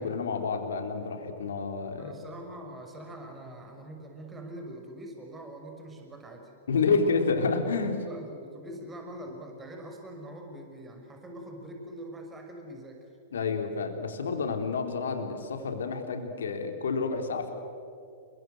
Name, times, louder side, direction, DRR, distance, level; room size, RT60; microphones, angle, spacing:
voice 1, 0.0-2.1 6.7-8.0 13.3-17.5, left 4 dB, 70° left, 5 dB, 3.5 m, -29 dB
voice 2, 2.0-7.0 7.9-13.0, right 1 dB, 15° right, 2 dB, 5.6 m, -43 dB
30.0 x 22.5 x 8.0 m, 2.4 s
figure-of-eight pair, 105°, 0 cm